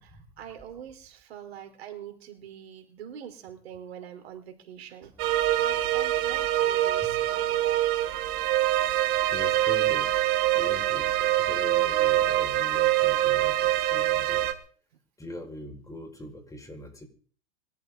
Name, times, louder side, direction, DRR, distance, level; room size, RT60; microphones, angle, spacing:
voice 1, 0.0-8.2, right 9 dB, 70° right, 6 dB, 4.4 m, -45 dB
sound 1, 5.2-14.5, right 14 dB, 45° right, 2.2 m, -24 dB
voice 2, 9.3-10.1 10.5-14.5 15.2-17.0, left 1 dB, 10° left, 4 dB, 5.9 m, -41 dB
24.5 x 13.0 x 4.1 m, 0.43 s
hypercardioid pair, 105°, 33 cm